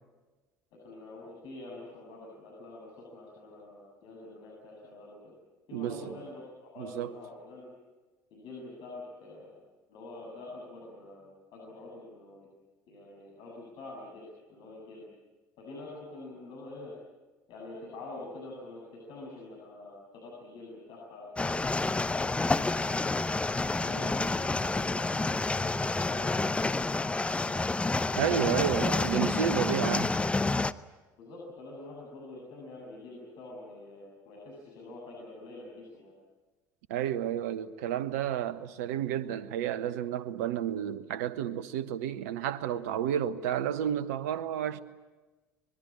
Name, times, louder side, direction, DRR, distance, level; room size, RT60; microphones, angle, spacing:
voice 1, 0.8-5.3 5.7-7.7 8.3-9.5 9.9-12.5 12.9-15.0 15.6-16.9 17.5-23.2 23.7-27.7 31.2-36.1, left 2 dB, 55° left, 7.8 m, -46 dB
voice 2, 5.7-6.1 6.8-7.1 28.2-30.1 36.9-44.8, right 10 dB, 70° right, 1.2 m, -31 dB
sound 1, 21.4-30.7, left 3 dB, 15° left, 0.8 m, -29 dB
25.5 x 21.0 x 8.7 m
figure-of-eight pair, 65°, 9 cm